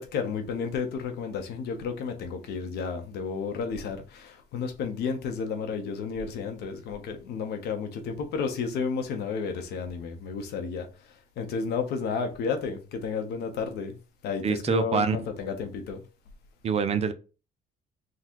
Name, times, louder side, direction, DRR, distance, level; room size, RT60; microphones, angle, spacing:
voice 1, 0.0-10.9 11.4-13.9 14.2-16.0, left 5 dB, 75° left, 1.0 m, -32 dB
voice 2, 14.4-15.2 16.6-17.1, right 6 dB, 40° right, 0.5 m, -25 dB
3.8 x 2.3 x 4.4 m
cardioid pair, 110°, 17 cm